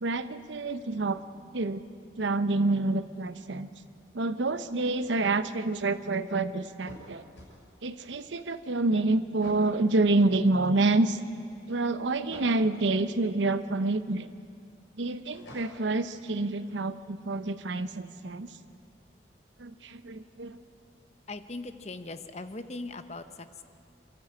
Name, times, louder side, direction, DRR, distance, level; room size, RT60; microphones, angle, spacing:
voice 1, 0.0-1.2 1.5-1.8 2.2-3.7 4.1-7.3 7.8-11.2 11.7-14.3 15.0-18.5 19.6-20.6, right 2 dB, 85° right, 12 dB, 0.9 m, -28 dB
sound 1, 6.9-7.5 9.4-9.7 12.3-12.6 15.3-15.9, equal, 80° left, 6.5 m, -47 dB
voice 2, 21.3-23.2, left 2 dB, 35° left, 10 dB, 0.8 m, -39 dB
27.0 x 13.0 x 8.7 m, 2.3 s
head